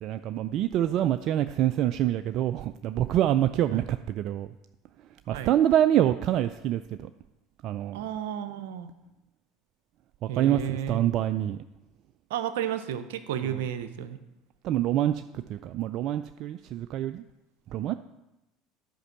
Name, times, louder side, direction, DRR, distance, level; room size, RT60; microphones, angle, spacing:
voice 1, 0.0-4.5 5.3-7.1 7.6-8.0 10.2-11.6 13.4-13.6 14.6-15.2 15.5-17.2 17.7-17.9, right 12 dB, 55° right, 10 dB, 0.3 m, -26 dB
voice 2, 7.9-8.9 10.3-11.0 12.3-14.2, right 10 dB, 75° right, 10 dB, 0.7 m, -32 dB
10.5 x 5.3 x 6.4 m, 0.97 s
hypercardioid pair, 80°, 0 cm